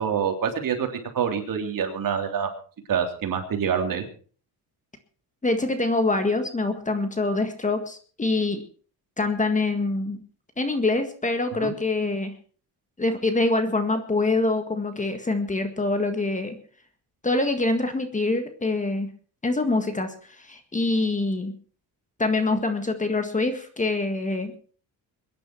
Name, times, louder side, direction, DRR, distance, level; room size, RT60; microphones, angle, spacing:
voice 1, 0.0-2.5 2.9-4.0 11.6-11.7, right 7 dB, 50° right, 4 dB, 3.3 m, -26 dB
voice 2, 5.4-8.6 9.2-10.2 10.6-12.3 13.0-16.6 17.2-19.1 19.4-21.5 22.2-24.5, left 2 dB, 20° left, 8 dB, 1.8 m, -25 dB
23.0 x 10.5 x 4.5 m, 0.41 s
cardioid pair, 125°, 41 cm